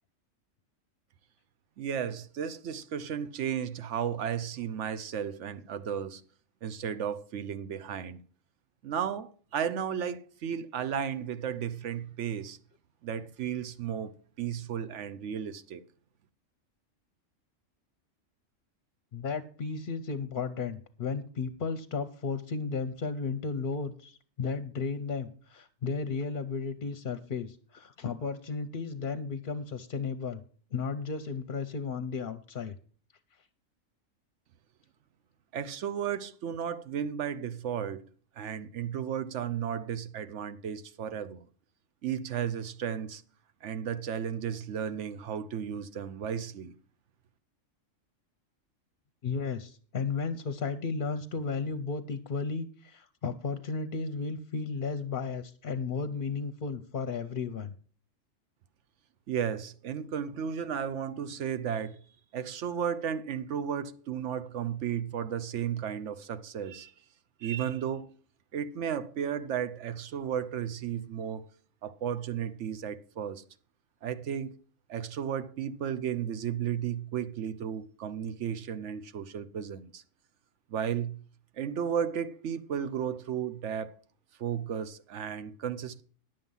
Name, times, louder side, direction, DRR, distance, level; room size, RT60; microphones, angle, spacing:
voice 1, 1.8-6.2 6.6-8.2 8.8-12.6 13.0-15.8 35.5-38.1 38.4-41.5 42.0-43.2 43.6-46.7 59.3-62.0 62.3-66.9 67.4-68.1 68.5-71.4 71.8-73.4 74.0-74.6 74.9-80.0 80.7-81.2 81.5-83.9 84.4-86.0, right 8 dB, 65° right, 1.0 m, -34 dB
voice 2, 19.1-30.4 30.7-32.8 49.2-57.7, left 5 dB, 50° left, 0.7 m, -34 dB
10.5 x 7.6 x 5.5 m
omnidirectional pair, 1.3 m